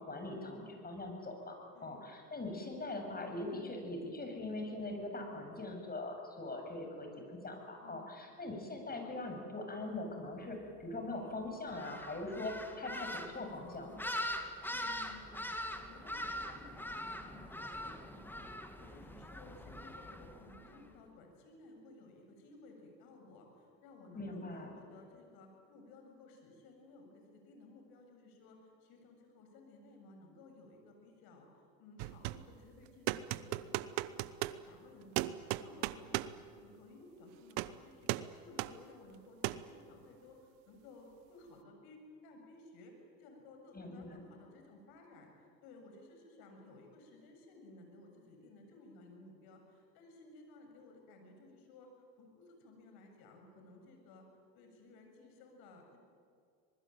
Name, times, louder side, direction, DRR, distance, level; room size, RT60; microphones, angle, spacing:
voice 1, 0.0-14.0 24.1-24.7 43.7-44.2, left 2 dB, 25° left, 3 dB, 7.4 m, -42 dB
sound 1, 11.7-20.8, left 1 dB, 5° left, 2.4 m, -43 dB
voice 2, 14.7-15.4 15.7-18.4 18.7-35.3 35.6-42.9 43.2-51.9 52.2-54.3 54.5-56.0, left 2 dB, 65° left, 3 dB, 7.3 m, -57 dB
sound 2, 32.0-32.5 33.1-34.6 35.2-36.4 37.5-37.8 38.1-38.3 38.6-38.7 39.4-39.7, right 17 dB, 70° right, 1.0 m, -36 dB
26.0 x 20.5 x 9.2 m, 2.3 s
hypercardioid pair, 80°, 39 cm